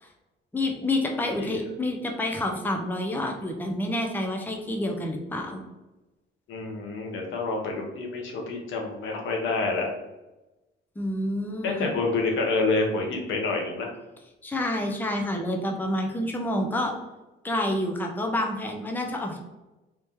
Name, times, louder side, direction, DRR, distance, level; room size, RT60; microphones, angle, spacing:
voice 1, 0.5-5.6 11.0-11.9 14.4-16.9 17.4-19.4, left 1 dB, 10° left, 1 dB, 0.6 m, -28 dB
voice 2, 6.5-9.9 11.6-13.9, left 3 dB, 80° left, 1 dB, 0.9 m, -28 dB
3.2 x 2.8 x 3.5 m, 1.0 s
cardioid pair, 90°, 20 cm